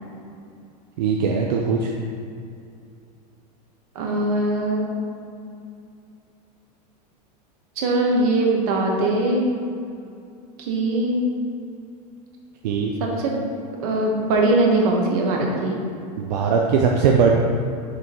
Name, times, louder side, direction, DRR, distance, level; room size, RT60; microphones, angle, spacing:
voice 1, 1.0-1.9 12.6-12.9 16.2-17.3, right 6 dB, 85° right, 0 dB, 0.6 m, -20 dB
voice 2, 3.9-4.9 7.8-9.4 10.6-11.3 13.0-13.4 13.8-15.7, right 2 dB, 60° right, -1 dB, 1.3 m, -21 dB
6.5 x 3.7 x 4.5 m, 2.5 s
supercardioid pair, 150°, 21 cm